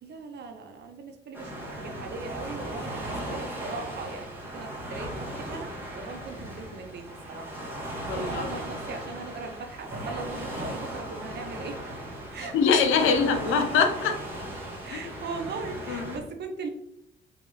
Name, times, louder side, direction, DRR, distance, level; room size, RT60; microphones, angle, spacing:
voice 1, 0.0-7.5 8.1-11.8 12.3-12.6 14.8-16.7, right 4 dB, 55° right, 6 dB, 0.8 m, -39 dB
Waves surf, 1.3-16.2, right 1 dB, 10° right, 1.6 m, -37 dB
voice 2, 8.1-8.5 12.5-14.2 14.9-15.2 15.9-16.2, left 5 dB, 85° left, 6 dB, 0.7 m, -24 dB
3.9 x 3.4 x 3.1 m, 0.76 s
cardioid pair, 90°, 20 cm